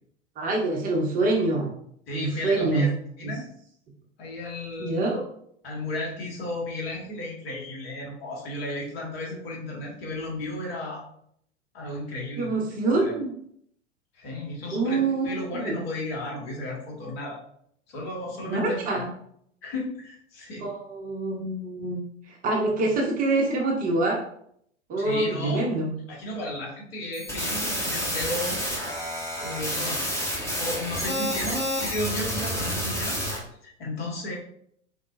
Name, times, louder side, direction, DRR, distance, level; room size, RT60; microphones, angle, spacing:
voice 1, 0.4-1.7 2.1-2.9 3.2-3.3 4.8-5.2 12.4-13.3 14.7-15.3 15.6-15.7 18.4-19.1 20.6-22.0 22.3-24.2 24.9-25.9, right 2 dB, 25° right, -1 dB, 0.7 m, -25 dB
voice 2, 2.1-2.9 3.2-3.5 4.2-5.1 5.6-11.0 11.7-12.5 12.9-13.1 14.1-17.4 17.9-19.0 19.6-20.7 25.0-25.7 26.1-28.6 29.4-30.0 30.5-34.4, left 1 dB, 55° left, -2 dB, 1.5 m, -34 dB
sound 1, 27.1-33.4, equal, 5° left, 1.0 m, -29 dB
3.9 x 3.6 x 2.5 m, 0.69 s
figure-of-eight pair, 95°, 36 cm